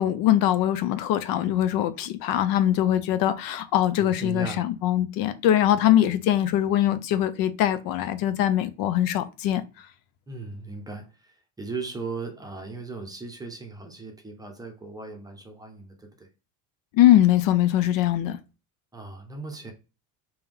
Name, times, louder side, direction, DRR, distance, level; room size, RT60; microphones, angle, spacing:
voice 1, 0.0-9.6 16.9-18.4, left 12 dB, 60° left, 0.5 m, -22 dB
voice 2, 4.0-4.6 10.3-16.3 18.9-19.7, right 4 dB, 10° right, 0.7 m, -37 dB
3.5 x 2.9 x 3.5 m
cardioid pair, 150°, 40 cm